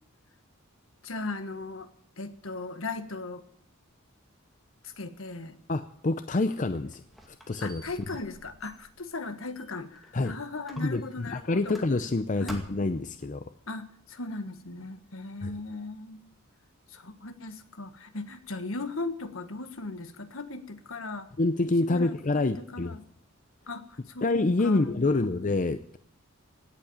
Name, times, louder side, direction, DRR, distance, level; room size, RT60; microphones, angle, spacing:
voice 1, 1.0-1.9 2.2-3.4 4.8-5.6 7.6-11.7 12.4-12.6 13.7-16.3 16.9-21.3 21.8-23.0 23.7-24.3 24.6-25.4, left 3 dB, 70° left, 9 dB, 1.5 m, -38 dB
voice 2, 5.7-7.0 7.3-7.8 10.1-10.4 10.8-13.5 15.4-15.5 21.4-23.0 24.2-26.0, left 2 dB, 35° left, 10 dB, 0.6 m, -27 dB
Squeak, 6.6-10.2 10.7-12.2 12.5-13.0, equal, ahead, 2.3 m, -48 dB
17.0 x 8.3 x 8.8 m, 0.64 s
head